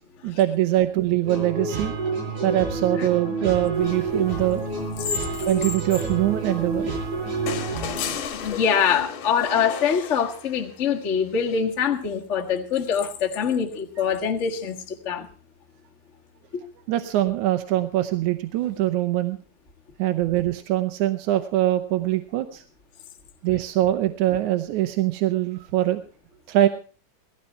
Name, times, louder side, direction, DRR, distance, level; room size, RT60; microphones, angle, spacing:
voice 1, 0.2-1.9 2.4-4.6 5.5-6.9 7.9-8.0 16.9-19.4 20.0-22.6 23.4-26.0 26.5-26.7, right 14 dB, 75° right, 8 dB, 1.9 m, -23 dB
sound 1, 1.3-8.2, right 3 dB, 50° right, 8.5 m, -29 dB
sound 2, 3.7-8.6, left 5 dB, 25° left, 5.0 m, -38 dB
sound 3, 7.5-10.8 12.3-12.4, left 6 dB, 65° left, 2.7 m, -34 dB
voice 2, 8.3-15.3 16.5-16.6, left 7 dB, 90° left, 1 dB, 0.6 m, -24 dB
18.0 x 14.0 x 4.3 m, 0.37 s
omnidirectional pair, 4.3 m